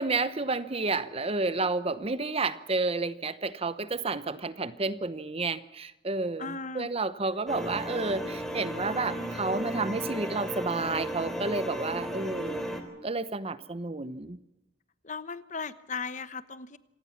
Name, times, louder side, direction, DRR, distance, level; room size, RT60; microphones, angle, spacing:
voice 1, 0.0-12.7 13.0-14.4, right 3 dB, 35° right, 14 dB, 0.9 m, -31 dB
voice 2, 6.4-6.9 15.0-16.8, left 4 dB, 40° left, 13 dB, 1.0 m, -37 dB
sound 1, 7.5-12.8, equal, ahead, 3.4 m, -34 dB
26.5 x 18.0 x 7.3 m, 0.92 s
head